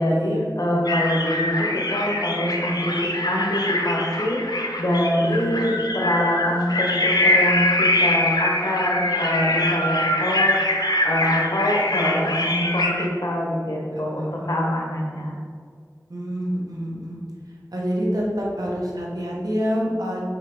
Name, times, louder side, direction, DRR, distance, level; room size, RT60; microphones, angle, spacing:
voice 1, 0.0-10.7 11.0-15.4, equal, 65° left, -2 dB, 1.4 m, -24 dB
sound 1, 0.9-13.1, left 1 dB, 90° left, 0.6 m, -23 dB
voice 2, 5.3-5.7 14.2-14.3 16.1-17.2 17.7-20.2, equal, 70° right, -4 dB, 1.4 m, -27 dB
5.6 x 3.7 x 5.1 m, 2.1 s
wide cardioid pair, 40°, 7 cm